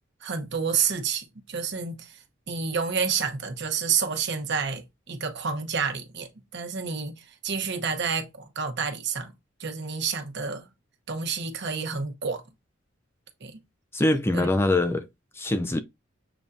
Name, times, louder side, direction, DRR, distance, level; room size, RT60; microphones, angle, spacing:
voice 1, 0.2-9.3 9.6-10.7 11.1-12.4 13.4-13.6 14.3-14.5, right 6 dB, 60° right, 1.0 m, -29 dB
voice 2, 13.9-15.1 15.4-15.8, left 2 dB, 10° left, 0.3 m, -23 dB
6.8 x 2.7 x 2.3 m
head